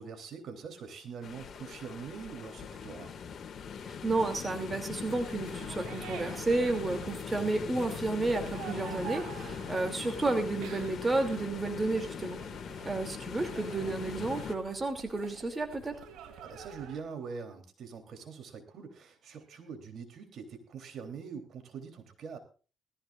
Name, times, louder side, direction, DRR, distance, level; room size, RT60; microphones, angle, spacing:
voice 1, 0.0-3.2 12.7-13.1 16.4-22.4, right 6 dB, 65° right, 6 dB, 3.5 m, -44 dB
sound 1, 1.2-14.5, left 7 dB, 55° left, 2.1 m, -41 dB
voice 2, 3.8-12.4 12.8-15.9, right 2 dB, 25° right, 5 dB, 2.9 m, -31 dB
sound 2, 4.9-17.0, right 8 dB, 85° right, 3.0 m, -48 dB
20.0 x 14.5 x 2.5 m, 0.35 s
cardioid pair, 90°, 0 cm